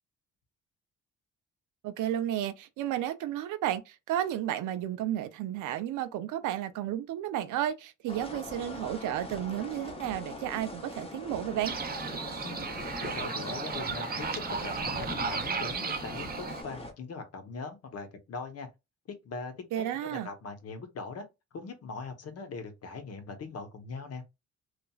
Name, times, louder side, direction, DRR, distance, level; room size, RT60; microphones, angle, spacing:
voice 1, 1.8-11.7 19.7-20.3, right 12 dB, 80° right, 0.5 m, -32 dB
sound 1, 8.1-16.9, left 2 dB, 20° left, 0.7 m, -41 dB
sound 2, 11.6-16.6, right 5 dB, 30° right, 0.5 m, -35 dB
voice 2, 12.4-14.3 14.6-18.7 19.1-21.3 21.5-24.2, left 4 dB, 55° left, 0.8 m, -41 dB
2.9 x 2.4 x 2.2 m
cardioid pair, 90°, 30 cm